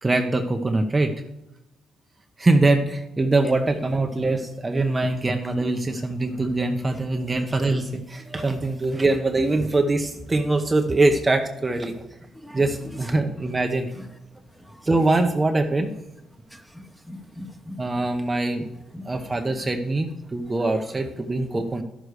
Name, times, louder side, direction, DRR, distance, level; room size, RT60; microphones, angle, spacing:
voice 1, 0.0-1.1 2.4-11.9 12.5-13.9 14.8-15.9 17.8-18.7 19.0-21.8, right 2 dB, 20° right, 4 dB, 0.8 m, -23 dB
voice 2, 16.5-17.8 18.9-19.0 21.5-21.6, equal, ahead, 5 dB, 1.1 m, -39 dB
12.5 x 6.5 x 4.9 m, 0.92 s
cardioid pair, 90°, 0 cm